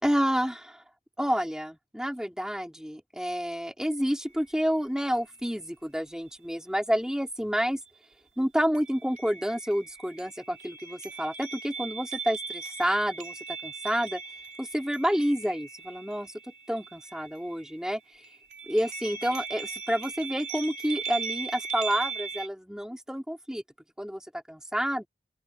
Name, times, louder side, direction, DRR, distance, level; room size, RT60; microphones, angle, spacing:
voice 1, 0.0-0.8 1.2-7.8 8.4-14.2 14.6-16.3 16.7-18.2 18.7-23.6 24.0-25.1, equal, 5° right, 2.8 m, -29 dB
sound 1, 4.3-4.4 5.0-5.6 8.7-17.9 18.2-22.5, right 5 dB, 45° right, 4.6 m, -39 dB
open air
head